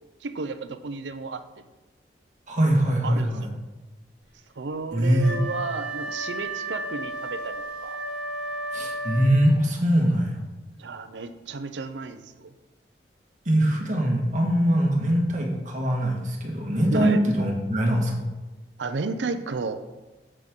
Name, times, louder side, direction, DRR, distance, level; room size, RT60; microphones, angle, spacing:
voice 1, 0.2-1.4 3.0-3.5 4.6-8.0 10.8-12.5 16.9-17.2 18.8-19.8, right 4 dB, 85° right, 10 dB, 0.5 m, -33 dB
voice 2, 2.5-3.5 4.9-5.4 8.7-10.4 13.4-18.1, equal, 45° right, -1 dB, 1.6 m, -22 dB
Wind instrument woodwind instrument, 5.2-9.6, right 1 dB, 5° right, 3.1 m, -33 dB
7.6 x 7.6 x 3.7 m, 1.1 s
head